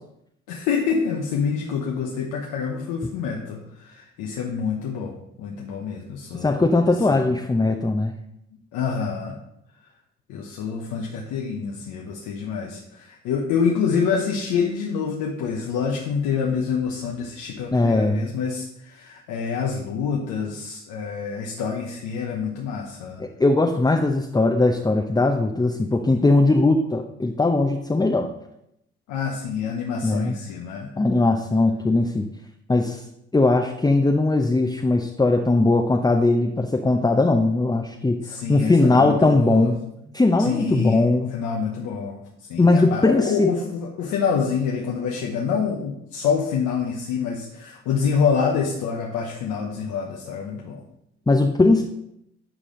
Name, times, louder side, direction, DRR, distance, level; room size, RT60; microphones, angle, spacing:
voice 1, 0.5-6.8 7.1-7.3 8.7-9.4 10.3-23.2 29.1-30.9 38.2-39.7 40.4-41.0 41.3-50.8, left 6 dB, 80° left, 0 dB, 0.9 m, -27 dB
voice 2, 6.4-8.1 17.7-18.3 23.2-28.3 30.0-30.4 31.0-32.3 32.7-33.0 33.3-39.8 40.1-41.3 42.6-43.5 51.3-51.8, left 2 dB, 15° left, 3 dB, 0.7 m, -19 dB
8.9 x 4.9 x 3.8 m, 0.79 s
hypercardioid pair, 45°, 30 cm